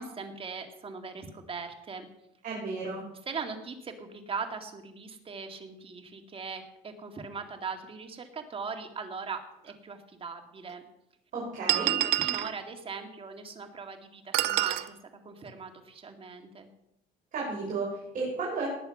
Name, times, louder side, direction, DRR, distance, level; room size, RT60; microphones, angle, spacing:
voice 1, 0.0-2.1 3.3-10.8 11.8-15.0 15.2-16.7, right 5 dB, 35° right, 4 dB, 2.1 m, -40 dB
voice 2, 2.4-3.0 11.3-11.9 17.3-18.7, right 3 dB, 50° right, -4 dB, 5.5 m, -33 dB
sound 1, 9.7-9.8 10.7-10.8 11.7-12.5 14.3-14.9, right 16 dB, 80° right, 0.6 m, -27 dB
19.0 x 7.4 x 5.5 m, 0.81 s
cardioid pair, 110°, 17 cm